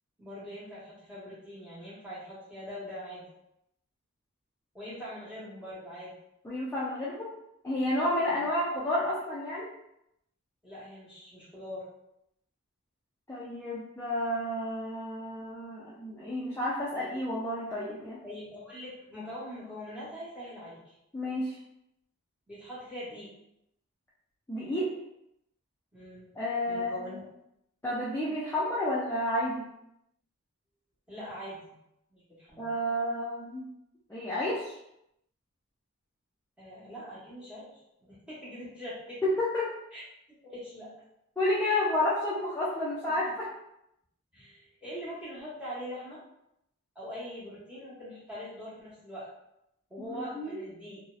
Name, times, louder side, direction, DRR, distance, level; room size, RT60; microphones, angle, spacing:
voice 1, 0.2-3.3 4.7-6.1 8.3-8.5 10.6-11.9 18.2-20.9 22.5-23.3 25.9-26.3 26.6-27.2 31.1-31.7 32.1-32.7 36.6-39.2 39.9-40.0 40.4-40.9 41.6-41.8 44.3-46.2 46.9-49.3 49.9-51.0, equal, 5° right, -11 dB, 0.9 m, -42 dB
voice 2, 6.4-7.3 7.6-9.7 13.3-18.2 21.1-21.5 24.5-24.9 26.4-27.1 27.8-29.7 32.6-33.6 34.1-34.7 39.4-39.7 41.4-43.5 50.0-50.6, left 1 dB, 10° left, -8 dB, 0.3 m, -31 dB
2.6 x 2.0 x 2.3 m, 0.82 s
head